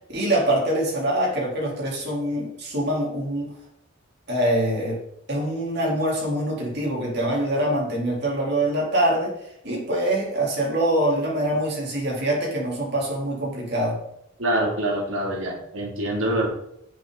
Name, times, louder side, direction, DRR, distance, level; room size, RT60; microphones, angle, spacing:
voice 1, 0.1-3.5 4.3-5.0 5.3-9.3 9.6-14.0, right 1 dB, 50° right, -3 dB, 4.0 m, -24 dB
voice 2, 14.4-16.5, right 1 dB, 75° right, -1 dB, 3.2 m, -25 dB
10.5 x 7.5 x 4.2 m, 0.76 s
head